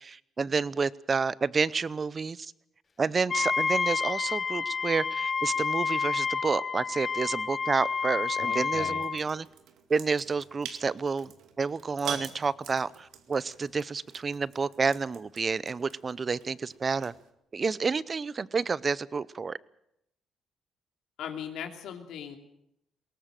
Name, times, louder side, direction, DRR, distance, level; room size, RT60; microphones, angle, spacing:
voice 1, 0.0-2.5 3.0-9.5 9.9-11.3 11.6-17.1 17.5-19.6, right 5 dB, 35° right, 19 dB, 0.7 m, -29 dB
Wind instrument woodwind instrument, 3.3-9.2, left 5 dB, 40° left, 0.9 m, -29 dB
voice 2, 8.4-9.0 21.2-22.4, left 8 dB, 80° left, 4 dB, 2.9 m, -38 dB
sound 1, 9.0-17.3, right 8 dB, 85° right, 2.2 m, -45 dB
21.5 x 18.5 x 7.6 m, 0.81 s
cardioid pair, 90°, 0 cm